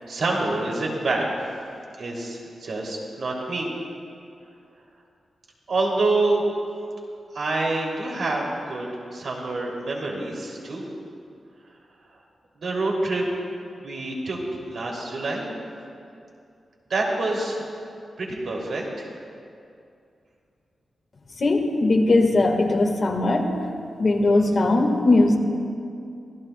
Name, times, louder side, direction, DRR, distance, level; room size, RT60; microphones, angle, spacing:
voice 1, 0.1-1.3 2.0-3.7 5.7-6.4 7.3-10.9 12.6-13.3 13.8-15.5 16.9-17.6 18.2-19.1, right 2 dB, 65° right, -2 dB, 2.6 m, -27 dB
voice 2, 21.4-23.5 24.0-25.4, left 2 dB, 45° left, 2 dB, 1.5 m, -19 dB
24.5 x 15.5 x 2.2 m, 2.5 s
wide cardioid pair, 130°, 0 cm